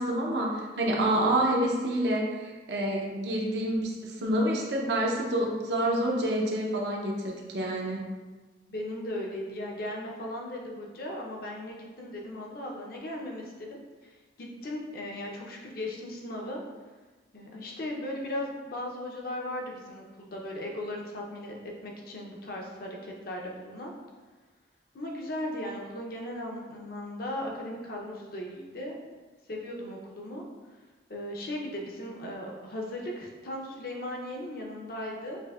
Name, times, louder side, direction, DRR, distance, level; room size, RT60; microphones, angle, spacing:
voice 1, 0.0-8.0, right 1 dB, 70° right, -2 dB, 0.6 m, -28 dB
voice 2, 8.7-13.8 14.4-16.6 17.3-21.6 21.8-23.9 24.9-29.0 29.5-30.4 31.1-35.4, left 1 dB, 55° left, -1 dB, 0.7 m, -37 dB
5.9 x 2.6 x 2.4 m, 1.3 s
head